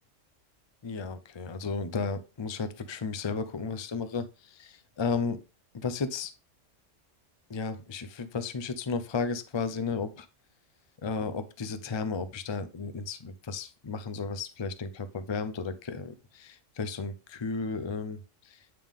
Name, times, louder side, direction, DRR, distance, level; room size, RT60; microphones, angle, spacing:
voice 1, 0.8-5.4 5.7-6.3 7.5-10.3 11.0-18.2 18.4-18.6, left 4 dB, 40° left, 10 dB, 0.4 m, -34 dB
9.2 x 3.6 x 3.6 m, 0.30 s
omnidirectional pair, 1.3 m